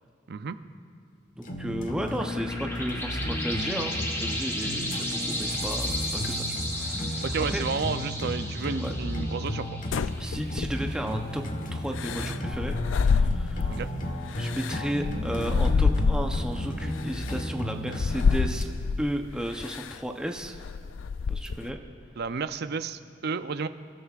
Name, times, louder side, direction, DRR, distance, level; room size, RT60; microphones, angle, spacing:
sound 1, 1.4-18.6, left 1 dB, 45° left, 1.2 m, -33 dB
voice 1, 1.4-7.6 8.8-9.0 10.2-11.4 11.7-13.8 14.4-18.7 19.0-20.6 21.3-21.8, equal, 5° right, 3 dB, 0.7 m, -34 dB
sound 2, 1.8-10.9, left 1 dB, 15° left, 1.3 m, -35 dB
voice 2, 7.2-9.7 13.7-13.9 22.2-23.7, right 5 dB, 55° right, 11 dB, 0.5 m, -31 dB
sound 3, 9.9-11.1 12.0-13.9 14.3-16.6 17.2-17.3 17.9-19.1 19.6-20.0 20.4-21.7, left 5 dB, 80° left, 0.4 m, -27 dB
25.5 x 13.0 x 2.4 m, 2.5 s
head